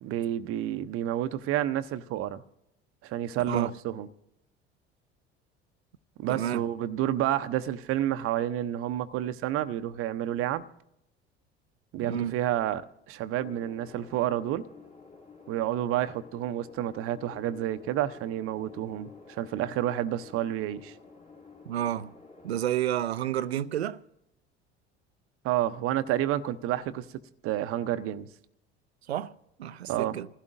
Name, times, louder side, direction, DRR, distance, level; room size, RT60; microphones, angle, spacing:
voice 1, 0.0-2.4 3.0-4.1 6.2-10.7 11.9-12.8 13.1-14.6 15.5-20.9 25.4-27.1 27.4-28.3 29.9-30.2, right 12 dB, 45° right, 0.7 m, -29 dB
voice 2, 6.3-6.7 12.0-12.4 21.7-22.1 22.4-24.0 29.1-29.3 29.6-30.3, right 11 dB, 80° right, 0.5 m, -30 dB
abstract background atmosphere, 13.4-22.5, left 4 dB, 25° left, 2.2 m, -51 dB
27.5 x 15.5 x 2.6 m
figure-of-eight pair, 65°, 32 cm